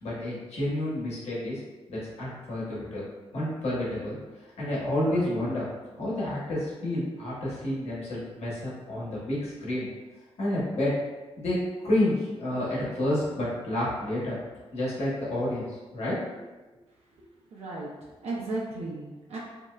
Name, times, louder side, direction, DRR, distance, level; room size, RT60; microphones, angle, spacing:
voice 1, 0.0-1.6 1.9-3.0 3.3-4.2 4.6-5.7 6.0-9.9 10.4-10.9 11.4-11.6 11.8-14.3 14.7-15.6 15.9-16.4, left 1 dB, 80° left, -7 dB, 1.0 m, -29 dB
voice 2, 17.2-19.4, right 2 dB, 75° right, -4 dB, 0.6 m, -36 dB
3.0 x 2.7 x 2.3 m, 1.2 s
wide cardioid pair, 110°, 11 cm